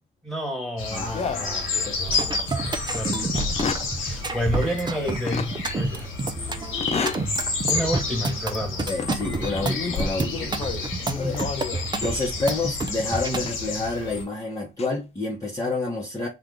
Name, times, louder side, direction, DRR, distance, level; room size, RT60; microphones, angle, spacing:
voice 1, 0.2-3.6 4.0-6.1 7.7-9.0, equal, ahead, 1.7 m, -30 dB
sound 1, 0.8-14.2, left 4 dB, 85° left, 1.6 m, -31 dB
voice 2, 0.9-2.0 8.9-10.6 11.1-11.4 12.0-16.3, left 3 dB, 15° left, 1.0 m, -29 dB
sound 2, 1.1-2.2 2.7-2.8 3.4-3.9 5.3-5.5 6.8-7.3 7.8-7.9 8.8-9.2 9.6-11.9 13.3-13.6 14.5-14.9, left 5 dB, 30° left, 0.5 m, -31 dB
sound 3, 2.1-13.4, right 3 dB, 20° right, 0.6 m, -29 dB
3.2 x 2.5 x 3.7 m
cardioid pair, 90°, 20 cm